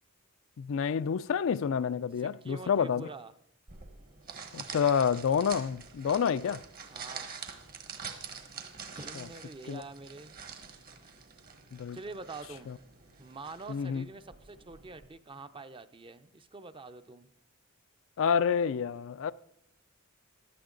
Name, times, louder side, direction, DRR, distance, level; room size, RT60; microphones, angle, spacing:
voice 1, 0.6-3.1 4.5-6.6 9.7-9.8 11.7-12.0 12.7-12.8 13.7-14.1 18.2-19.3, left 7 dB, 65° left, 0.4 m, -28 dB
voice 2, 2.2-3.3 6.8-7.5 8.9-10.4 11.9-12.7 13.2-17.3, right 3 dB, 25° right, 0.6 m, -46 dB
sound 1, 3.7-15.1, right 6 dB, 45° right, 1.4 m, -46 dB
15.5 x 11.5 x 3.9 m
head